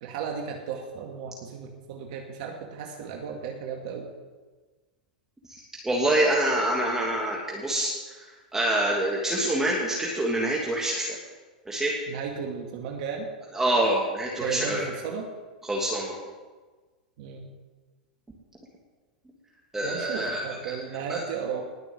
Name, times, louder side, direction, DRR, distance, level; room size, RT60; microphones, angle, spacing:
voice 1, 0.0-4.1 12.1-13.3 14.4-15.3 17.2-17.5 19.8-21.7, right 6 dB, 60° right, 2 dB, 2.3 m, -34 dB
voice 2, 5.8-7.9 8.5-11.2 11.7-11.9 13.5-14.8 15.7-16.3 19.7-20.4 20.7-20.8 21.1-21.2, right 1 dB, 10° right, -3 dB, 2.9 m, -26 dB
20.0 x 6.9 x 8.1 m, 1.3 s
hypercardioid pair, 105°, 5 cm